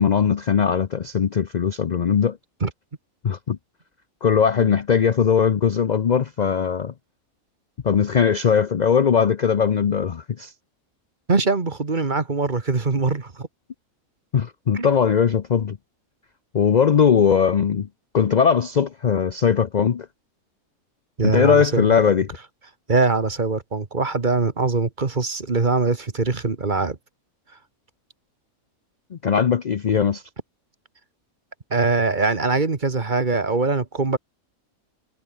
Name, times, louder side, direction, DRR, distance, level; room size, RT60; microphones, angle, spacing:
voice 1, 0.0-2.4 3.2-3.6 4.2-6.9 7.8-10.5 14.3-15.8 16.5-17.9 18.1-20.1 21.2-22.3 29.1-30.2, left 7 dB, 50° left, 0.5 m, -19 dB
voice 2, 11.3-13.5 14.7-14.9 21.2-21.8 22.9-27.0 31.7-34.2, right 3 dB, 35° right, 1.7 m, -22 dB
omnidirectional pair, 1.5 m